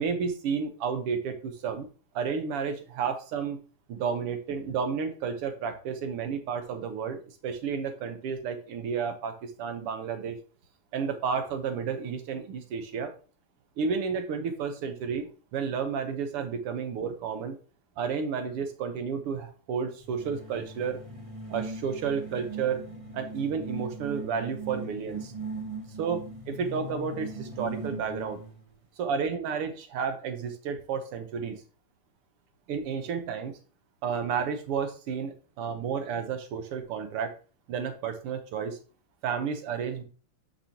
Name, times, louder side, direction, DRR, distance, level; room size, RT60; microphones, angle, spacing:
voice 1, 0.0-1.9 2.2-3.6 3.9-10.4 10.9-13.1 13.8-17.6 18.0-21.0 21.5-22.8 23.1-25.3 26.0-28.4 29.0-31.6 32.7-33.5 34.0-37.3 37.7-38.8 39.2-40.0, right 6 dB, 90° right, 7 dB, 2.0 m, -31 dB
sound 1, 20.0-28.6, right 2 dB, 30° right, 0.5 m, -39 dB
10.0 x 5.8 x 2.9 m, 0.37 s
omnidirectional pair, 2.4 m